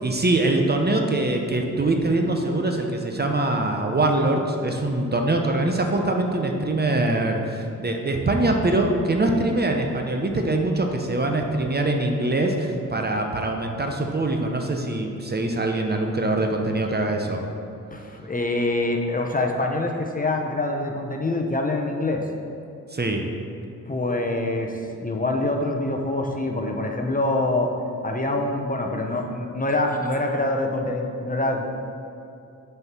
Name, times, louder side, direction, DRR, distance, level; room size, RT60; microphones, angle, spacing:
voice 1, 0.0-17.4 22.9-23.2, right 2 dB, 30° right, 3 dB, 0.8 m, -23 dB
voice 2, 17.9-22.2 23.9-24.7 25.0-27.7 28.0-31.6, left 2 dB, 25° left, 2 dB, 0.9 m, -25 dB
6.3 x 4.6 x 6.0 m, 2.6 s
cardioid pair, 50°, 33 cm